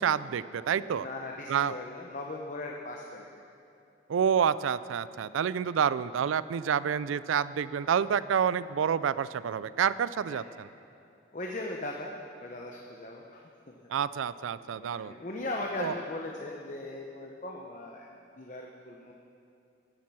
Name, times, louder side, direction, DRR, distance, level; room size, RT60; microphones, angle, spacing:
voice 1, 0.0-1.1 1.5-1.7 4.1-10.7 13.9-15.1 15.8-15.9, right 7 dB, 90° right, 16 dB, 0.4 m, -28 dB
voice 2, 0.9-3.4 10.3-10.5 11.3-12.1 12.4-13.8 14.8-18.1 18.4-19.1, left 2 dB, 40° left, 1 dB, 0.8 m, -39 dB
16.5 x 7.5 x 6.1 m, 2.6 s
head